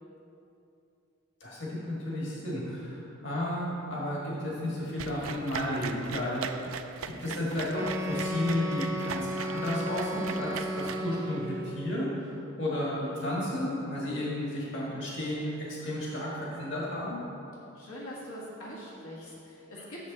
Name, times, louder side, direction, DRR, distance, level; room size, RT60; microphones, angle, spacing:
voice 1, 1.4-6.8 7.2-17.2, left 1 dB, 60° left, -5 dB, 1.8 m, -33 dB
sound 1, 5.0-11.5, right 7 dB, 80° right, 0.4 m, -39 dB
Wind instrument woodwind instrument, 7.7-11.8, equal, 10° right, 0.5 m, -34 dB
voice 2, 17.8-20.1, equal, 85° left, -6 dB, 1.8 m, -43 dB
8.7 x 6.9 x 4.1 m, 2.7 s
head